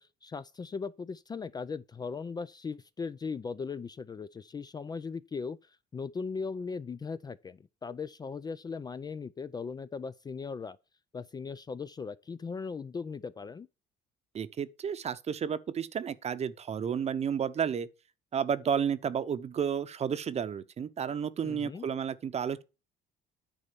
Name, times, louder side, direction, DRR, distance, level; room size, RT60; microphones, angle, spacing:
voice 1, 0.0-10.8 11.1-13.7 21.4-21.9, left 5 dB, 25° left, 0.4 m, -38 dB
voice 2, 14.3-17.9 18.3-22.6, right 7 dB, 40° right, 0.8 m, -32 dB
10.0 x 4.1 x 6.9 m
cardioid pair, 110°, 17 cm